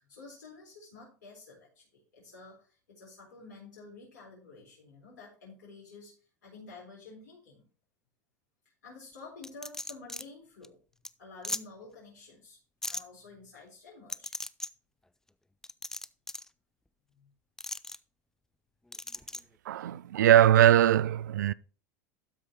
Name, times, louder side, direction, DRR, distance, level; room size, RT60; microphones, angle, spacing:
voice 1, 0.0-6.1 6.4-7.6 8.8-10.8 11.2-12.6 12.9-14.3 17.1-17.3, left 3 dB, 85° left, 4.1 m, -50 dB
sound 1, 9.4-10.2 10.6-10.7 11.0-11.1 11.4-11.6 12.8-13.0 14.1-14.7 15.6-16.5 17.6-18.0 18.9-19.4, left 2 dB, 5° left, 0.4 m, -37 dB
voice 2, 19.7-21.5, right 11 dB, 80° right, 0.4 m, -21 dB
12.5 x 4.8 x 4.4 m
hypercardioid pair, 90°, 10 cm